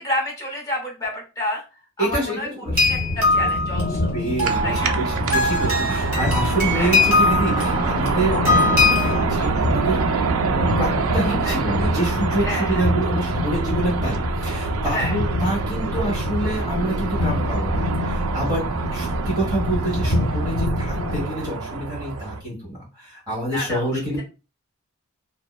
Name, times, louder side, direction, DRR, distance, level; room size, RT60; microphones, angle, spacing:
voice 1, 0.0-1.6 2.0-4.1 4.4-5.0 6.7-6.9 9.4-9.5 11.4-11.6 12.4-12.8 14.9-15.2 23.5-24.2, left 1 dB, 15° left, -2 dB, 0.8 m, -29 dB
voice 2, 2.0-2.8 4.1-10.0 10.8-24.2, right 1 dB, 20° right, -6 dB, 1.2 m, -27 dB
sound 1, 2.7-21.2, left 1 dB, 65° left, 1.0 m, -26 dB
sound 2, 2.8-9.2, left 3 dB, 40° right, 1.4 m, -22 dB
sound 3, 4.4-22.4, right 4 dB, 70° right, 0.4 m, -26 dB
2.7 x 2.1 x 2.3 m, 0.31 s
head